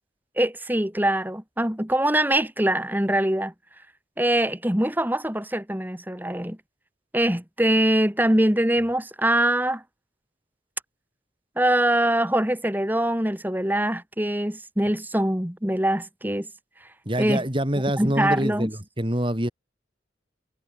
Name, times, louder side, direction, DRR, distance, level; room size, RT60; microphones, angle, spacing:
voice 1, 0.4-3.5 4.2-6.6 7.1-9.8 11.6-16.5 17.2-17.4 18.0-18.7, right 1 dB, 10° right, 2.3 m, -23 dB
voice 2, 17.1-19.5, right 1 dB, 25° right, 4.0 m, -25 dB
head